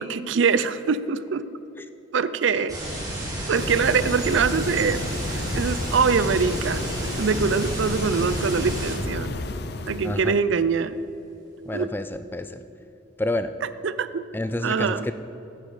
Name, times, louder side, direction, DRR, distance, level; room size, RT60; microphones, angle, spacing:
voice 1, 0.0-1.5 2.1-2.8 3.5-5.0 5.3-9.3 9.9-11.0 11.7-11.9 13.8-14.2 14.6-15.1, right 5 dB, 70° right, 14 dB, 0.5 m, -23 dB
sound 1, 2.7-8.9, right 1 dB, 20° right, 2.3 m, -31 dB
sound 2, 3.5-10.3, left 2 dB, 55° left, 0.7 m, -32 dB
voice 2, 10.0-10.4 11.6-12.6 13.2-13.5 14.3-15.1, left 1 dB, 10° left, 10 dB, 0.3 m, -29 dB
10.5 x 10.0 x 5.0 m, 3.0 s
head